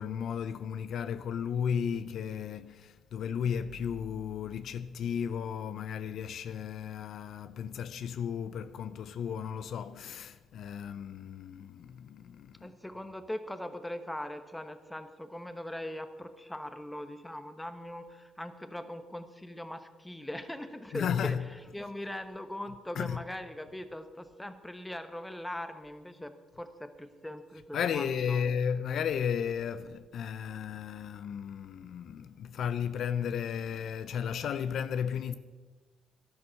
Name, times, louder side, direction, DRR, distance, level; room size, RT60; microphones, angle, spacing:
voice 1, 0.0-12.7 20.9-21.6 22.9-23.2 27.7-35.3, left 7 dB, 65° left, 0.5 m, -34 dB
voice 2, 12.6-21.4 21.7-28.5, left 1 dB, 5° left, 1.0 m, -41 dB
11.0 x 11.0 x 6.4 m
cardioid pair, 105°, 0 cm